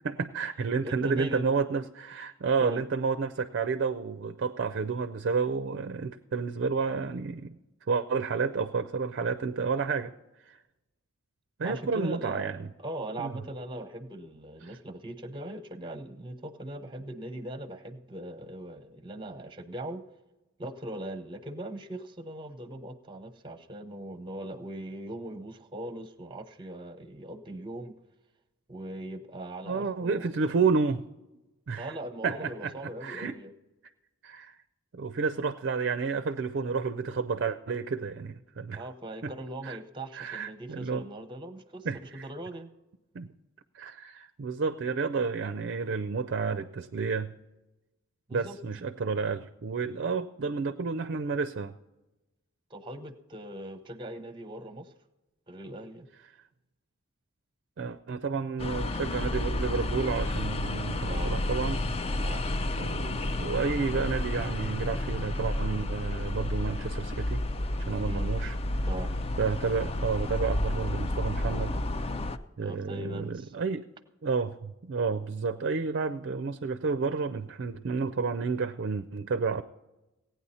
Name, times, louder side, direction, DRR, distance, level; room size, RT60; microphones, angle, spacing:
voice 1, 0.0-7.6 7.9-10.1 10.5-10.6 11.6-12.7 13.2-13.4 14.6-14.7 29.6-31.0 31.7-32.0 32.2-33.4 34.2-34.5 34.9-38.9 39.2-39.3 39.6-39.8 40.1-41.0 41.8-42.2 43.1-43.3 43.7-47.3 48.3-51.7 57.8-61.9 62.8-67.4 67.8-68.6 69.4-71.8 72.6-73.9 74.2-79.6, right 5 dB, 55° right, 10 dB, 0.4 m, -30 dB
voice 2, 0.8-1.5 2.6-2.8 11.6-20.0 20.6-28.0 28.7-30.5 31.8-33.5 38.7-42.7 48.3-48.6 52.7-54.9 55.5-56.1 61.0-61.4 62.2-62.4 68.1-68.3 68.8-69.1 72.6-73.5, right 1 dB, 25° right, 10 dB, 0.7 m, -40 dB
Waiting in Parking Garage, 58.6-72.4, left 1 dB, 30° left, 0.4 m, -31 dB
16.5 x 9.2 x 4.2 m, 1.0 s
head